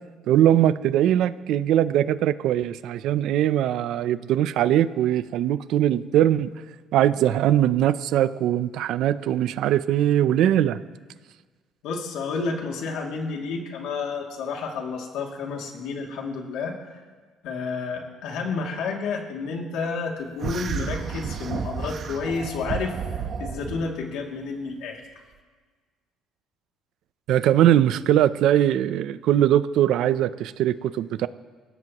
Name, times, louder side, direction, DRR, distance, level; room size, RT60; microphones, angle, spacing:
voice 1, 0.3-6.5 6.9-10.8 27.3-31.3, right 11 dB, 65° right, 15 dB, 0.5 m, -21 dB
voice 2, 11.8-16.9 17.4-23.0 23.4-25.0, left 4 dB, 75° left, 0 dB, 2.5 m, -30 dB
sound 1, 20.4-23.8, right 6 dB, 40° right, 1.0 m, -31 dB
28.0 x 17.0 x 3.0 m, 1.5 s
cardioid pair, 175°, 0 cm